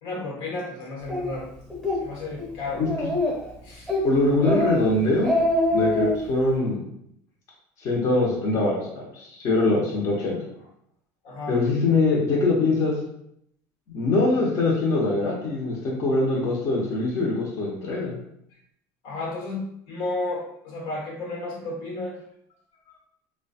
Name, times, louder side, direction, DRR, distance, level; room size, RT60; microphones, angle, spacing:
voice 1, 0.0-1.5 2.0-2.8 3.6-3.9 11.2-11.6 19.0-22.2 22.9-23.0, left 2 dB, 80° left, -1 dB, 1.2 m, -32 dB
Speech, 1.1-1.2 1.7-2.0 2.4-2.5 2.8-3.5 3.9-4.1 4.4-4.8 5.1-6.2, left 2 dB, 5° left, 0.9 m, -24 dB
voice 2, 4.0-5.3 5.7-6.8 7.8-10.4 11.5-13.0 13.9-18.2, left 2 dB, 45° left, -3 dB, 0.8 m, -23 dB
3.0 x 2.2 x 4.1 m, 0.74 s
cardioid pair, 150°, 8 cm